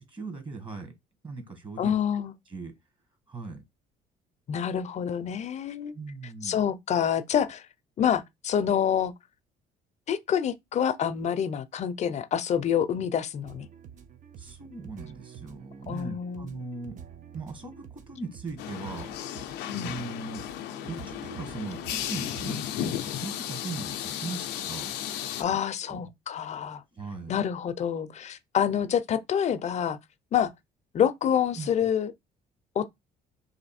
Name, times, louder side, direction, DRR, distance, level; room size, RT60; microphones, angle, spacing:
voice 1, 0.1-0.9 1.2-2.2 2.5-2.7 3.3-3.6 5.9-6.6 14.4-17.0 17.3-19.4 19.7-20.5 20.9-26.0 26.9-27.4 31.6-31.7, right 3 dB, 30° right, 1.5 m, -39 dB
voice 2, 1.8-2.3 4.5-5.9 6.4-7.7 8.0-9.1 10.1-13.7 15.9-16.5 19.7-19.9 25.4-26.8 27.3-30.0 30.3-30.5 30.9-32.1 32.8-32.9, left 8 dB, 40° left, 0.5 m, -27 dB
sound 1, 13.4-22.4, right 8 dB, 50° right, 0.7 m, -48 dB
sound 2, 18.6-25.4, left 11 dB, 90° left, 0.5 m, -34 dB
3.2 x 2.6 x 4.2 m
cardioid pair, 110°, 17 cm